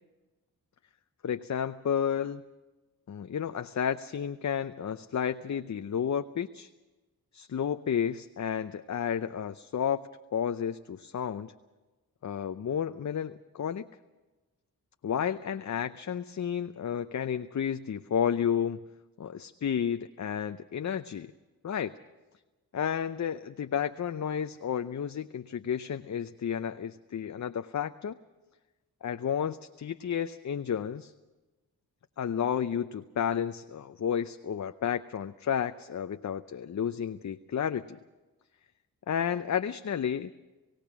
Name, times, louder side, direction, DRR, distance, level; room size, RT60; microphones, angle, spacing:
voice 1, 1.2-2.4 3.1-6.7 7.3-10.0 10.3-11.5 12.2-13.9 15.0-18.8 19.2-21.3 21.6-21.9 22.7-28.2 29.0-31.1 32.2-38.0 39.1-40.3, left 8 dB, 50° left, 9 dB, 0.7 m, -31 dB
28.0 x 16.0 x 6.1 m, 1.2 s
cardioid pair, 45°, 37 cm